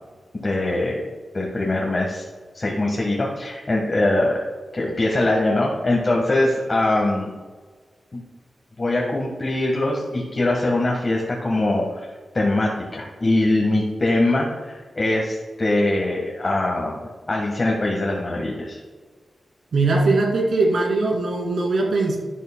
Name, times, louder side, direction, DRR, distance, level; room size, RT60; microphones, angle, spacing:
voice 1, 0.4-1.0 1.3-2.2 2.5-4.4 4.7-7.3 8.1-8.2 8.8-11.8 12.3-18.8, left 2 dB, 40° left, -1 dB, 1.5 m, -22 dB
voice 2, 19.7-22.2, right 3 dB, 80° right, -1 dB, 2.4 m, -20 dB
11.5 x 8.3 x 2.2 m, 1.4 s
wide cardioid pair, 85°, 0 cm